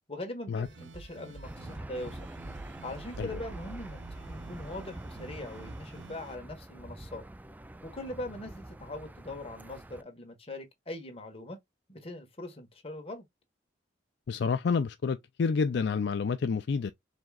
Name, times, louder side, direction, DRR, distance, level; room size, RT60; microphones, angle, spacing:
voice 1, 0.1-2.2 2.7-7.2 7.8-11.6 11.9-13.2, left 1 dB, 35° left, 1.4 m, -41 dB
sound 1, 0.6-6.4, right 3 dB, 75° right, 0.5 m, -48 dB
Aircraft / Engine, 1.4-10.0, right 1 dB, 10° right, 0.3 m, -46 dB
voice 2, 14.3-16.9, left 5 dB, 65° left, 0.4 m, -29 dB
5.0 x 3.6 x 2.3 m
head